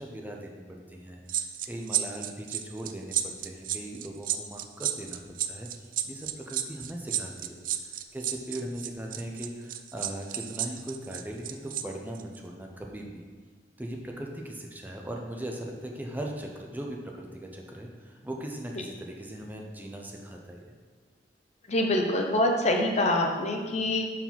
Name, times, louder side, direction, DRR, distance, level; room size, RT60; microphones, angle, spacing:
voice 1, 0.0-5.2 5.5-7.6 7.8-13.2 13.8-20.7, right 1 dB, 10° right, 0 dB, 0.6 m, -39 dB
sound 1, 1.3-11.8 12.1-12.4, right 12 dB, 50° right, 0.4 m, -32 dB
voice 2, 21.7-24.0, left 1 dB, 40° left, 2 dB, 0.7 m, -25 dB
5.4 x 4.8 x 5.8 m, 1.4 s
head